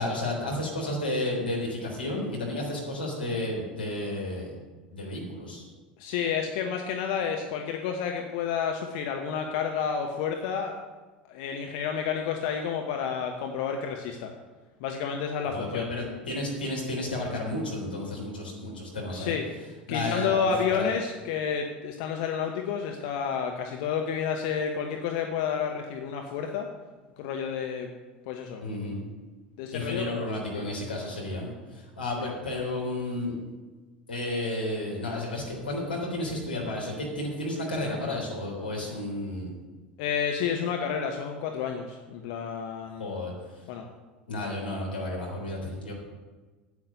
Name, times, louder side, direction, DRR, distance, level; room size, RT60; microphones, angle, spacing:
voice 1, 0.0-4.6 4.9-5.7 15.5-19.3 19.9-20.9 28.6-29.0 29.7-33.4 34.1-39.5 43.0-43.3 44.3-45.9, left 1 dB, 80° left, -2 dB, 3.4 m, -32 dB
voice 2, 6.0-10.7 11.3-14.3 14.8-15.9 19.1-19.5 19.9-26.7 27.2-27.9 28.3-28.6 29.6-30.2 30.5-30.6 40.0-43.1 43.7-43.9, left 7 dB, 55° left, 3 dB, 1.0 m, -30 dB
9.8 x 8.7 x 6.6 m, 1.3 s
figure-of-eight pair, 75°, 5 cm